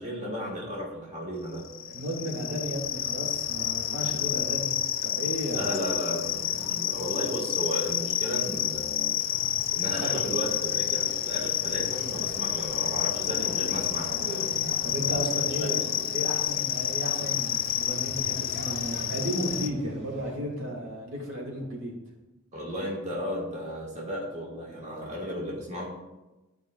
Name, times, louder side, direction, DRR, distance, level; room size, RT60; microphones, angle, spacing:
voice 1, 0.0-1.6 5.5-9.2 9.7-14.5 15.3-16.4 22.5-25.9, equal, 35° right, -4 dB, 1.6 m, -34 dB
sound 1, 1.5-19.7, left 11 dB, 45° left, 0.4 m, -29 dB
voice 2, 1.9-4.7 5.0-5.8 9.9-10.1 14.8-15.8 16.1-21.9, equal, 80° right, -2 dB, 2.0 m, -34 dB
sound 2, 9.2-20.4, equal, 60° right, 1.8 m, -43 dB
12.5 x 4.9 x 2.4 m, 1.1 s
head